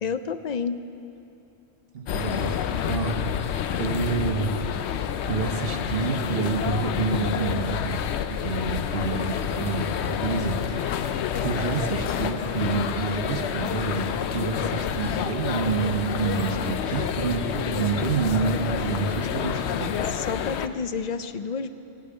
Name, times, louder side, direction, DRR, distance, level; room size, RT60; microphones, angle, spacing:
voice 1, 0.0-0.8 20.1-21.7, left 5 dB, 50° left, 11 dB, 0.5 m, -30 dB
voice 2, 1.9-3.1 3.8-4.5 5.3-8.0 8.4-11.0 11.4-19.9, right 5 dB, 65° right, 5 dB, 1.1 m, -28 dB
sound 1, 2.1-20.7, left 8 dB, 85° left, 0.9 m, -28 dB
16.5 x 8.5 x 8.7 m, 2.7 s
omnidirectional pair, 1.1 m